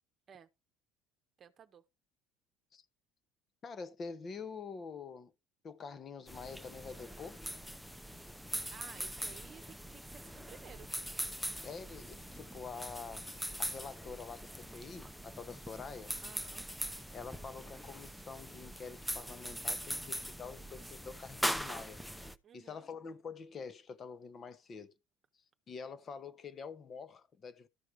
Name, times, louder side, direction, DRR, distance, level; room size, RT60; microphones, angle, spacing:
voice 1, 1.4-1.8 8.7-10.9 16.2-16.7 22.4-22.9, right 8 dB, 45° right, 0.9 m, -55 dB
voice 2, 3.6-5.3 5.6-7.4 11.6-13.3 13.6-16.1 17.1-22.0 22.5-24.9 25.7-27.7, left 5 dB, 40° left, 1.2 m, -46 dB
sound 1, 6.3-22.3, equal, ahead, 0.8 m, -41 dB
13.5 x 4.8 x 4.6 m
hypercardioid pair, 70°, 0 cm